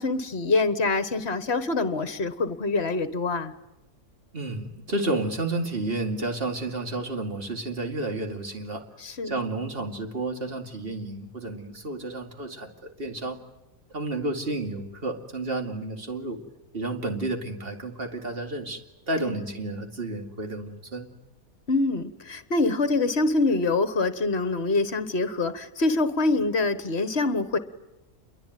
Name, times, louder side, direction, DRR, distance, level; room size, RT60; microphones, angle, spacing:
voice 1, 0.0-3.5 9.0-9.4 19.2-19.4 21.7-27.6, left 3 dB, 45° left, 11 dB, 1.6 m, -25 dB
voice 2, 4.3-8.8 9.2-13.4 13.9-16.4 16.7-18.8 19.1-21.1, right 2 dB, 40° right, 4 dB, 2.6 m, -31 dB
28.0 x 22.5 x 9.3 m, 0.97 s
omnidirectional pair, 1.6 m